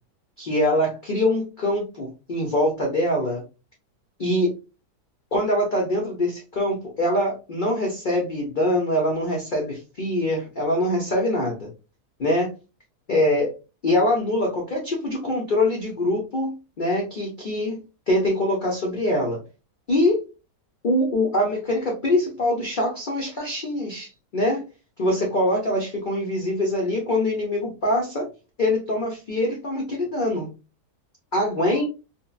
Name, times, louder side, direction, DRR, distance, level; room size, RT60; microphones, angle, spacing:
voice 1, 0.4-3.4 4.2-4.5 5.3-11.7 12.2-12.5 13.1-13.5 13.8-17.8 18.1-19.4 19.9-20.2 20.8-24.6 25.0-28.3 28.6-30.5 31.3-31.8, left 1 dB, 75° left, -1 dB, 0.4 m, -23 dB
3.6 x 2.0 x 2.3 m, 0.30 s
omnidirectional pair, 1.8 m